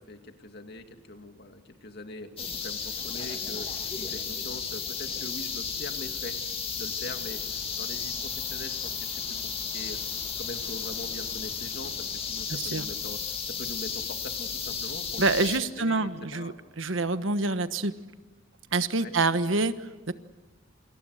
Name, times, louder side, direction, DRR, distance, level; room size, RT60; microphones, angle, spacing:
voice 1, 0.0-2.3 2.6-3.7 4.0-6.4 6.7-9.2 9.5-10.0 10.4-13.2 13.5-15.5 15.8-16.6 18.9-19.2, left 1 dB, 55° left, 5 dB, 2.5 m, -42 dB
sound 1, 2.4-15.6, left 6 dB, 30° left, 2.2 m, -34 dB
voice 2, 12.5-12.8 15.2-17.9 18.7-19.7 20.1-20.2, right 3 dB, 75° right, 11 dB, 1.3 m, -26 dB
28.5 x 26.5 x 6.6 m, 1.2 s
head